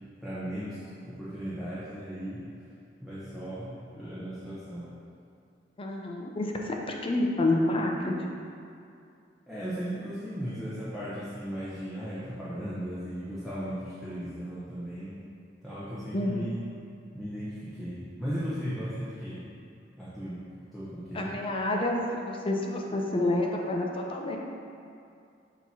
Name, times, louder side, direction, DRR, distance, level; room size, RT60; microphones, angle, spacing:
voice 1, 0.2-2.5 3.0-4.9 9.5-15.2 15.6-16.6 17.1-19.4 20.0-20.4 20.7-21.3, equal, ahead, -12 dB, 1.0 m, -36 dB
voice 2, 5.8-6.8 7.0-8.1 16.1-16.6 21.1-24.4, left 1 dB, 30° left, 0 dB, 0.6 m, -28 dB
6.8 x 3.0 x 5.5 m, 2.4 s
head